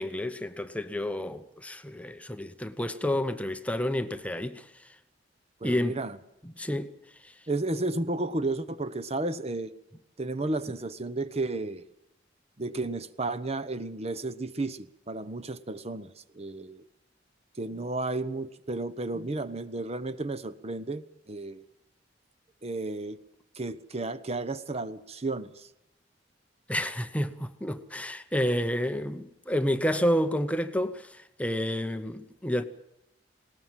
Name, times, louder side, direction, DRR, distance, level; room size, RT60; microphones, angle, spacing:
voice 1, 0.0-4.7 5.6-6.0 6.4-6.9 7.2-7.3 26.7-32.6, equal, 10° left, 0.9 m, -30 dB
voice 2, 5.6-6.2 7.5-9.7 10.2-11.8 12.6-16.8 17.6-21.6 22.6-23.2 23.5-25.7, right 2 dB, 35° right, 0.9 m, -33 dB
20.0 x 18.5 x 7.5 m
head